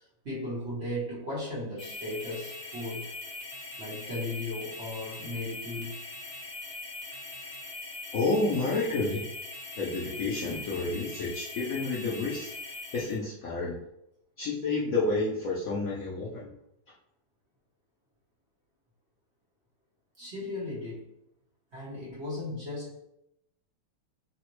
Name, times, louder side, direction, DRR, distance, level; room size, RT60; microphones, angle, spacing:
voice 1, 0.0-3.1 3.8-6.0 20.2-21.1 21.7-23.0, left 1 dB, 40° right, -7 dB, 1.0 m, -36 dB
sound 1, 1.8-13.2, left 2 dB, 35° left, 1.1 m, -41 dB
voice 2, 8.1-9.2 9.8-12.5 12.9-13.8 14.4-16.5, left 3 dB, 90° left, -5 dB, 0.7 m, -30 dB
3.8 x 2.1 x 2.9 m, 0.81 s
omnidirectional pair, 2.2 m